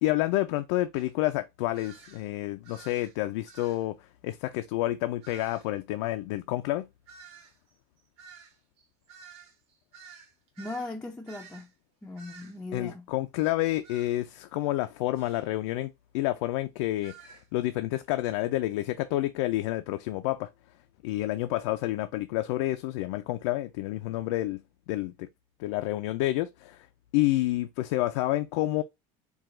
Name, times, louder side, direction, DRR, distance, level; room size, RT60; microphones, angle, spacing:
voice 1, 0.0-6.9 12.7-20.5 21.0-24.6 24.9-25.3 25.6-26.9 27.1-28.8, left 16 dB, 90° left, 0.4 m, -29 dB
sound 1, 0.9-1.1 1.7-2.3 2.6-3.2 3.5-3.8 5.2-5.7 7.1-10.9 11.3-11.7 12.2-12.6 13.8-14.1 15.1-15.4 17.0-17.5, right 6 dB, 45° right, 1.1 m, -51 dB
voice 2, 10.6-11.7 12.0-13.1, left 2 dB, 5° left, 0.4 m, -38 dB
4.8 x 2.3 x 3.7 m
cardioid pair, 165°, 15 cm